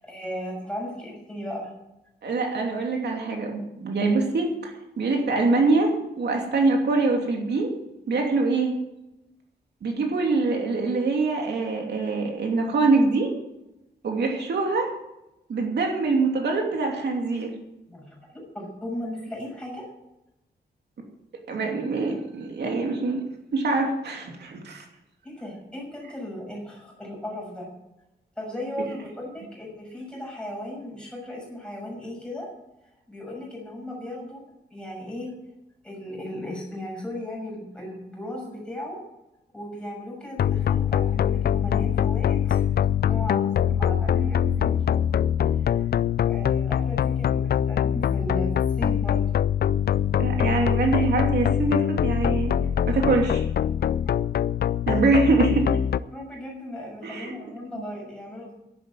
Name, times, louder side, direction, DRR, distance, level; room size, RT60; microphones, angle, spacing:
voice 1, 0.0-1.7 17.9-19.8 25.2-27.7 28.4-32.5 33.1-34.4 34.7-35.3 35.8-39.0 39.5-42.6 43.1-44.8 45.6-45.9 46.3-48.5 48.8-49.2 56.1-58.5, left 1 dB, 5° left, -2 dB, 6.4 m, -36 dB
voice 2, 2.2-4.7 5.0-7.7 8.1-8.7 9.8-13.3 14.0-14.9 15.5-17.5 21.5-23.2 23.5-24.8 50.2-52.5 52.9-53.4 54.9-55.7 57.0-57.3, right 3 dB, 75° right, 1 dB, 2.8 m, -24 dB
sound 1, 40.4-56.0, left 9 dB, 65° left, 0.4 m, -23 dB
11.5 x 11.0 x 7.5 m, 0.92 s
wide cardioid pair, 165°, 17 cm